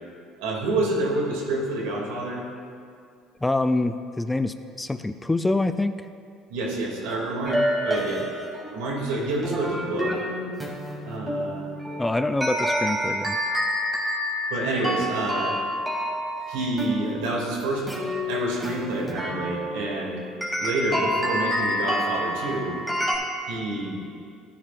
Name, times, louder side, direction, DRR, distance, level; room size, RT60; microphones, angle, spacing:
voice 1, 0.4-2.4 6.5-8.3 8.7-10.3 11.0-11.6 14.5-15.6 16.5-17.9 18.2-20.2 20.6-22.8 23.5-24.0, right 2 dB, 80° right, -2 dB, 2.5 m, -28 dB
voice 2, 3.4-6.0 12.0-13.4, left 2 dB, 15° left, 10 dB, 0.4 m, -25 dB
sound 1, 7.5-23.1, equal, 10° right, 2.8 m, -28 dB
14.0 x 9.9 x 2.5 m, 2.3 s
supercardioid pair, 80°, 0 cm